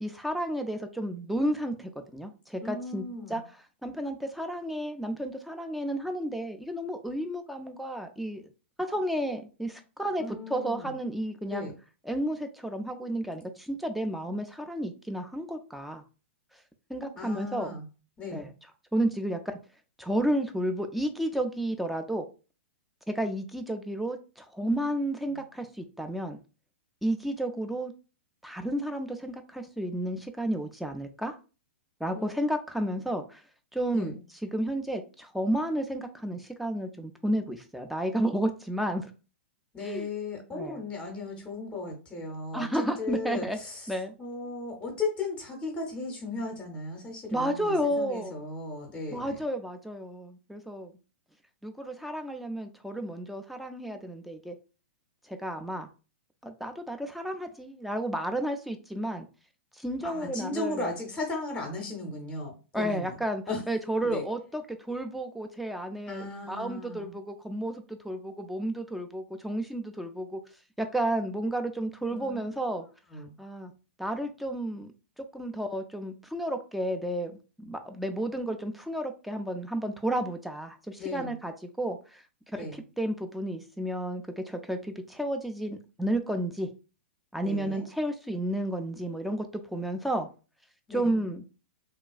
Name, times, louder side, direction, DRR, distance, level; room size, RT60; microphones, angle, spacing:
voice 1, 0.0-3.0 3.3-3.4 3.8-8.4 8.9-11.7 12.1-16.0 16.9-17.7 18.3-18.5 18.9-19.6 20.0-22.2 23.1-26.4 27.0-27.9 28.4-31.3 32.0-33.4 33.7-34.2 34.4-39.1 39.8-40.1 40.5-40.8 42.5-43.6 43.9-44.1 47.3-48.3 49.1-50.9 51.6-54.6 55.3-55.9 56.4-59.3 59.7-60.9 62.7-70.4 70.8-72.9 73.4-73.7 74.0-74.9 75.2-77.3 77.6-81.5 81.8-82.2 82.5-86.7 87.3-89.5 89.7-90.3 90.9-91.4, right 1 dB, ahead, 5 dB, 0.3 m, -32 dB
voice 2, 2.6-3.4 10.2-10.9 11.4-11.7 17.1-17.8 18.2-18.5 24.6-24.8 25.3-25.4 32.1-32.3 33.9-34.2 39.7-43.9 44.2-49.4 60.0-63.2 63.5-63.6 64.0-64.2 66.1-67.1 72.1-72.4 73.1-73.3 81.0-81.4 82.6-82.8 87.4-87.9 90.9-91.1, left 3 dB, 20° left, 0 dB, 0.7 m, -36 dB
2.9 x 2.3 x 2.3 m, 0.34 s
figure-of-eight pair, 105°, 7 cm